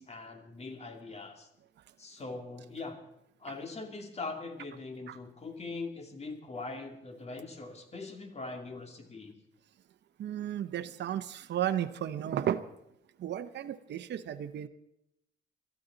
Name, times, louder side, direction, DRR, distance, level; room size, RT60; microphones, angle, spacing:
voice 1, 0.0-1.5 2.0-3.0 3.4-9.4, left 3 dB, 30° left, 2.6 m, -42 dB
voice 2, 10.2-12.6 13.2-14.7, right 10 dB, 60° right, 0.8 m, -33 dB
22.5 x 13.0 x 4.0 m
cardioid pair, 90°, 20 cm